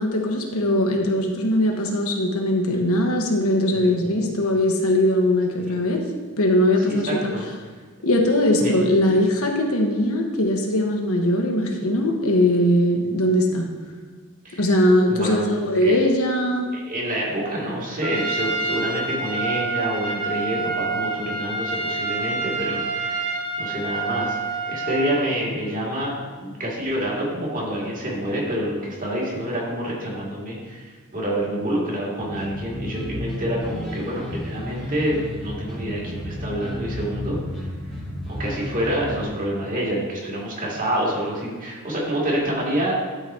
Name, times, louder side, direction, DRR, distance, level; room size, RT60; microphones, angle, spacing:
voice 1, 0.0-6.0 6.4-7.3 8.0-13.7 14.5-16.7, left 1 dB, 65° left, 2 dB, 1.3 m, -20 dB
voice 2, 3.7-4.2 5.6-5.8 6.9-7.5 8.6-8.7 14.4-14.6 15.1-16.0 16.7-24.4 24.7-37.4 38.3-42.9, right 1 dB, 40° right, -4 dB, 2.4 m, -27 dB
Trumpet, 18.0-25.3, right 3 dB, 80° right, 1.3 m, -27 dB
sound 1, 32.2-39.2, left 1 dB, ahead, 1.4 m, -32 dB
12.0 x 4.0 x 4.4 m, 1.5 s
head